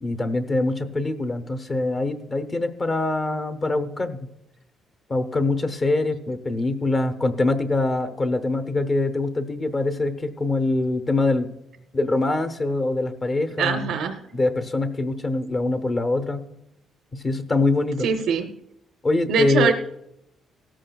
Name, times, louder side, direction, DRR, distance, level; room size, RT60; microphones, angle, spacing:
voice 1, 0.0-4.3 5.1-11.5 11.9-13.9 14.3-16.4 17.1-18.1 19.0-19.7, left 2 dB, 25° left, 10 dB, 0.8 m, -24 dB
voice 2, 13.6-14.2 18.0-18.5 19.3-19.7, right 7 dB, 70° right, 6 dB, 0.6 m, -22 dB
17.5 x 13.5 x 2.3 m, 0.83 s
cardioid pair, 170°, 0 cm